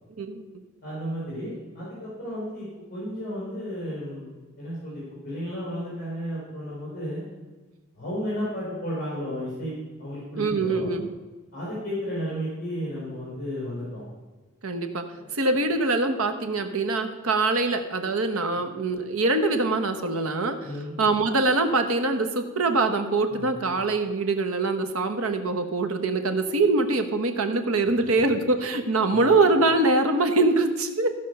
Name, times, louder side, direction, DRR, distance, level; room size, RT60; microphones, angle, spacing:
voice 1, 0.8-4.3 4.6-7.2 7.9-9.7 10.0-10.9 11.5-14.0 15.1-15.3 20.6-20.9 23.3-23.5 28.0-28.1 29.1-29.3, equal, 40° left, -7 dB, 4.7 m, -33 dB
voice 2, 10.4-11.1 14.6-15.1 15.3-20.6 21.0-31.1, right 3 dB, 90° right, 6 dB, 1.2 m, -23 dB
15.0 x 5.4 x 6.7 m, 1.3 s
head